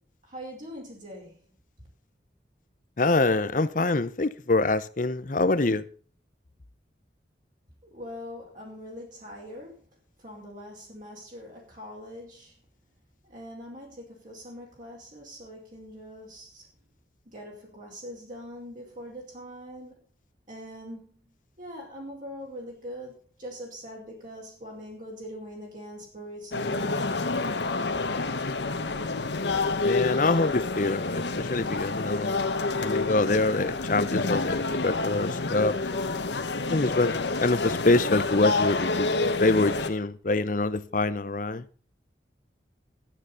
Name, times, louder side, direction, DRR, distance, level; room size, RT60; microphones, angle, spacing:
voice 1, 0.3-1.4 7.9-9.7 10.2-12.5 13.2-16.6 17.3-20.0 20.5-21.2 21.6-27.2, equal, 45° right, 4.9 m, -42 dB
voice 2, 3.0-5.9 29.8-32.4 32.8-35.8 36.7-41.7, left 2 dB, 45° left, 0.7 m, -25 dB
sound 1, 26.5-39.9, left 3 dB, 80° left, 1.2 m, -28 dB
12.0 x 9.5 x 5.8 m
head